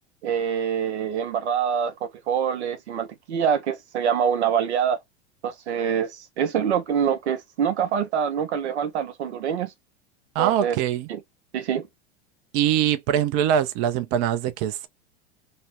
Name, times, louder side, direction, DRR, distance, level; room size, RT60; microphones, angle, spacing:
voice 1, 0.2-5.0 5.4-9.7 10.4-10.8 11.1-11.2 11.5-11.9, right 8 dB, 85° right, 0.7 m, -25 dB
voice 2, 10.3-11.1 12.5-14.9, right 10 dB, 45° right, 0.5 m, -23 dB
2.5 x 2.0 x 2.9 m
hypercardioid pair, 100°, 33 cm